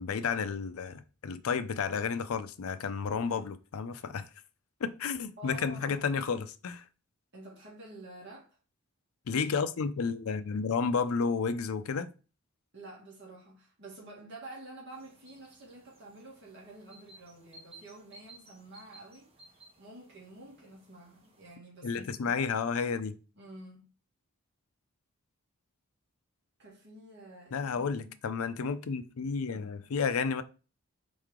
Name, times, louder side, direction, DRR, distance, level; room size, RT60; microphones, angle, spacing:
voice 1, 0.0-4.3 4.8-6.8 9.3-12.1 21.8-23.1 27.5-30.4, left 5 dB, 70° left, 0.4 m, -31 dB
voice 2, 5.4-6.2 7.3-8.5 12.7-19.3 19.8-22.5 23.4-23.9 26.6-28.1, right 2 dB, 50° right, 1.8 m, -49 dB
sound 1, 14.9-21.6, right 2 dB, 25° right, 1.0 m, -58 dB
4.4 x 3.1 x 3.6 m
head